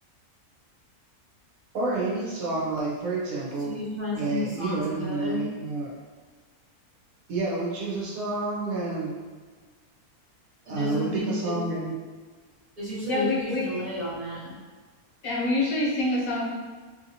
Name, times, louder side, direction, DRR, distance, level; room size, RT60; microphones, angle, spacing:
voice 1, 1.7-3.7 4.2-5.9 7.3-9.2 10.7-11.9, right 3 dB, 70° right, -4 dB, 1.1 m, -29 dB
voice 2, 3.6-5.5 10.6-11.6 12.8-14.6, left 1 dB, 40° right, -9 dB, 1.1 m, -32 dB
voice 3, 13.1-13.7 15.2-16.4, left 2 dB, 70° left, -4 dB, 1.0 m, -26 dB
2.8 x 2.8 x 2.6 m, 1.4 s
omnidirectional pair, 1.6 m